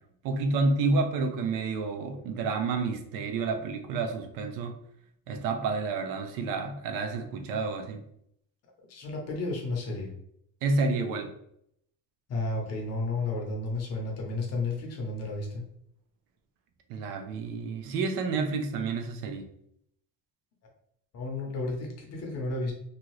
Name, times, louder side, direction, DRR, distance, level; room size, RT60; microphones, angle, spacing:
voice 1, 0.2-4.7 5.3-8.0 10.6-11.3 16.9-19.5, right 3 dB, 75° right, 6 dB, 0.6 m, -29 dB
voice 2, 8.9-10.1 12.3-15.6 21.1-22.7, left 2 dB, 45° left, 0 dB, 0.8 m, -32 dB
2.7 x 2.5 x 3.0 m, 0.72 s
cardioid pair, 170°, 35 cm